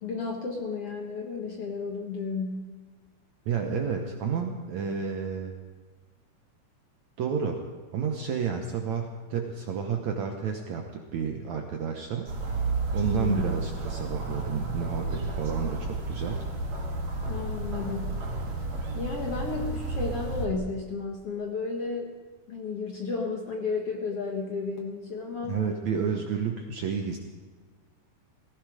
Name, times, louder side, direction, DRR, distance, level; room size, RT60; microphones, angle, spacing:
voice 1, 0.0-2.7 13.0-13.5 17.3-18.2 18.9-22.1 22.5-25.6, left 4 dB, 55° left, 0 dB, 1.8 m, -33 dB
voice 2, 3.5-5.5 7.2-7.6 7.9-12.3 12.9-16.4 25.4-27.2, right 6 dB, 70° right, 3 dB, 1.8 m, -31 dB
sound 1, 12.3-20.5, right 3 dB, 50° right, 2.9 m, -31 dB
18.0 x 15.0 x 4.9 m, 1.4 s
omnidirectional pair, 4.3 m